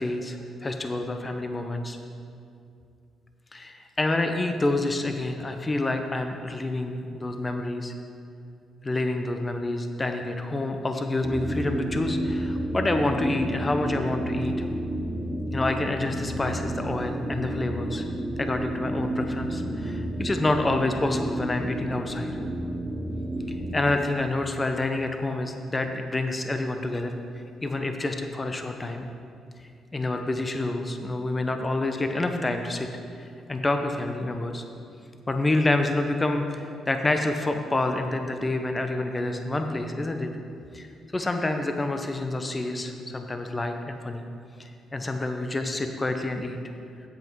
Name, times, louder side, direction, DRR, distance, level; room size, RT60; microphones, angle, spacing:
voice 1, 0.0-2.0 3.5-7.9 8.8-14.7 15.5-18.1 18.4-22.3 23.5-27.2 27.6-29.1 29.9-32.9 33.2-34.6 35.3-40.3 40.7-40.9 41.1-44.2 44.6-46.6, left 2 dB, 25° left, 5 dB, 0.7 m, -28 dB
sound 1, 11.2-23.8, right 1 dB, 5° right, 1.1 m, -31 dB
8.2 x 8.0 x 4.6 m, 2.4 s
cardioid pair, 90°, 0 cm